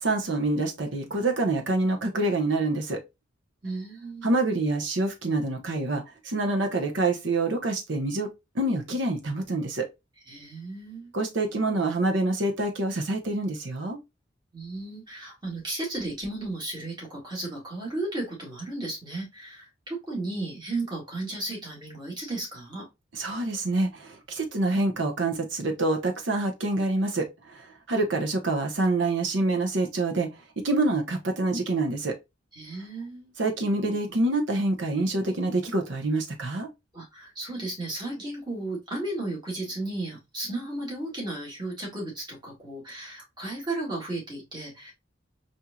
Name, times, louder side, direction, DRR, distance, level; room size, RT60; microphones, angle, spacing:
voice 1, 0.0-3.0 4.2-8.3 8.5-9.9 11.1-14.0 23.1-30.3 30.6-32.1 33.4-36.7, right 2 dB, 75° right, 0.9 m, -26 dB
voice 2, 3.6-4.3 10.3-11.1 14.5-22.9 32.5-33.3 36.9-44.9, right 2 dB, 25° right, 1.7 m, -34 dB
4.3 x 2.7 x 2.3 m
head